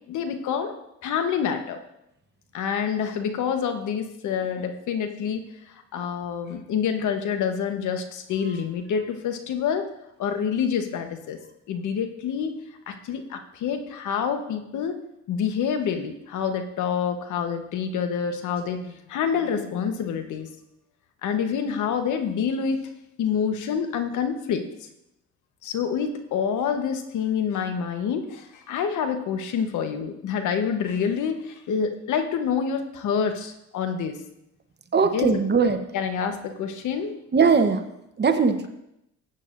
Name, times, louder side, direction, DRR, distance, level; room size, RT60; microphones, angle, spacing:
voice 1, 0.1-0.7 1.0-1.8 2.5-9.9 10.2-11.4 11.7-12.5 12.9-15.0 15.3-20.5 21.2-22.9 23.2-24.7 25.6-34.2 35.1-35.4 35.9-37.2, left 7 dB, 75° left, 7 dB, 1.0 m, -27 dB
voice 2, 34.9-35.8 37.3-37.9 38.2-38.7, right 5 dB, 35° right, 8 dB, 0.9 m, -20 dB
14.5 x 8.6 x 2.5 m, 0.83 s
cardioid pair, 90°, 30 cm